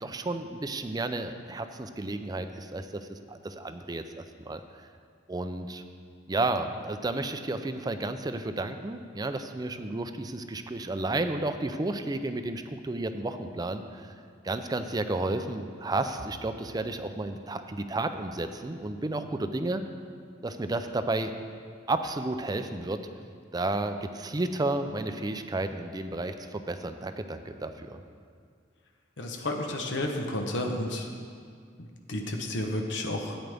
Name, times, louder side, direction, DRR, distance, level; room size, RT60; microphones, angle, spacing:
voice 1, 0.0-4.6 5.3-5.8 6.3-14.1 14.4-19.8 20.4-21.3 21.9-23.0 23.5-28.0, right 2 dB, 20° right, 8 dB, 0.4 m, -32 dB
voice 2, 29.2-31.1 32.1-33.4, left 1 dB, 70° left, 2 dB, 1.0 m, -31 dB
13.0 x 9.1 x 3.5 m, 2.1 s
head